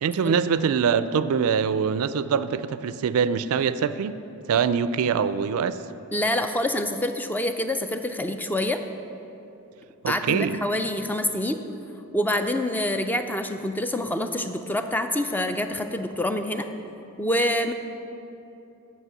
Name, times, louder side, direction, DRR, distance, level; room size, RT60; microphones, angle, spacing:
voice 1, 0.0-4.2 4.5-5.8 10.0-10.6, right 6 dB, 70° right, 14 dB, 0.3 m, -24 dB
voice 2, 6.1-8.8 10.1-11.6 12.1-16.7 17.2-17.7, left 1 dB, 10° left, 7 dB, 0.3 m, -26 dB
8.1 x 5.6 x 7.2 m, 2.9 s
head